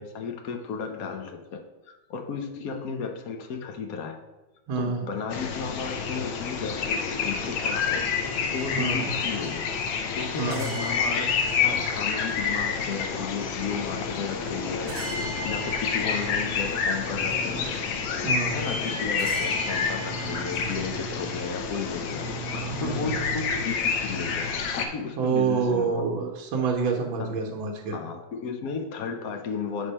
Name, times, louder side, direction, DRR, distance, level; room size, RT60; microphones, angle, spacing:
voice 1, 0.0-4.2 4.8-8.0 8.5-9.7 10.2-11.3 11.6-15.1 15.4-17.7 18.5-26.0 27.2-27.6 27.9-29.9, left 5 dB, 65° left, 5 dB, 0.9 m, -34 dB
voice 2, 4.7-5.0 8.7-9.1 10.4-10.7 18.2-18.6 22.5-23.1 25.2-28.0, right 5 dB, 85° right, 1 dB, 1.7 m, -27 dB
sound 1, 5.3-24.9, left 5 dB, 85° left, 1.6 m, -29 dB
sound 2, 8.3-21.0, right 1 dB, 65° right, 1.4 m, -41 dB
7.9 x 3.6 x 5.4 m, 1.0 s
omnidirectional pair, 2.1 m